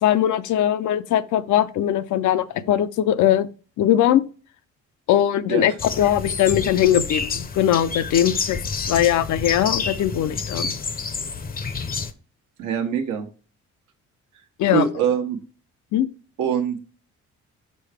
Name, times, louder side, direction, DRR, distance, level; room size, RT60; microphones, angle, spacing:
voice 1, 0.0-3.5 3.8-4.2 5.1-8.6 8.9-10.7 14.6-14.8 15.9-16.1, left 11 dB, 75° left, 0.6 m, -20 dB
sound 1, 5.8-12.1, left 5 dB, 30° left, 0.6 m, -29 dB
voice 2, 12.6-13.3 14.7-15.4 16.4-16.8, right 8 dB, 85° right, 1.1 m, -24 dB
5.7 x 5.3 x 3.4 m
cardioid pair, 90°, 30 cm